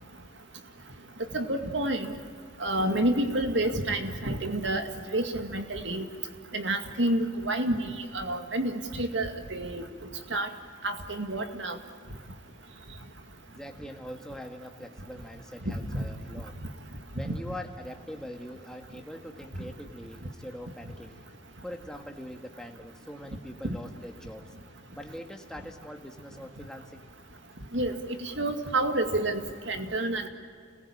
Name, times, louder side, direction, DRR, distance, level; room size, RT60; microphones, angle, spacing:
voice 1, 1.3-2.1 2.6-4.8 5.1-6.1 6.5-9.8 10.3-10.5 10.8-11.8 15.7-16.0 17.3-17.4 27.7-29.4 29.7-30.3, right 1 dB, 70° right, 6 dB, 2.2 m, -29 dB
voice 2, 13.5-16.6 17.1-21.2 21.6-24.5 24.9-27.1, equal, 5° left, 2 dB, 1.8 m, -43 dB
29.5 x 20.5 x 8.7 m, 2.2 s
head